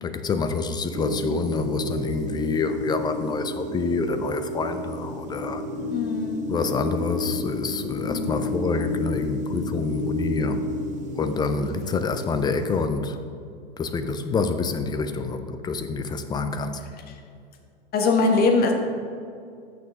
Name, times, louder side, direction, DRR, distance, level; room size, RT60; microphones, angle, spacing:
voice 1, 0.0-5.6 6.5-10.6 11.1-13.2 13.8-16.8, left 4 dB, 15° left, 9 dB, 0.4 m, -27 dB
sound 1, 0.9-12.9, left 1 dB, 25° right, 1.1 m, -31 dB
voice 2, 5.9-6.5 8.1-8.5 17.1-17.2 17.9-18.7, left 3 dB, 30° left, 3 dB, 1.5 m, -22 dB
13.5 x 6.2 x 3.6 m, 2.4 s
hypercardioid pair, 105°, 30 cm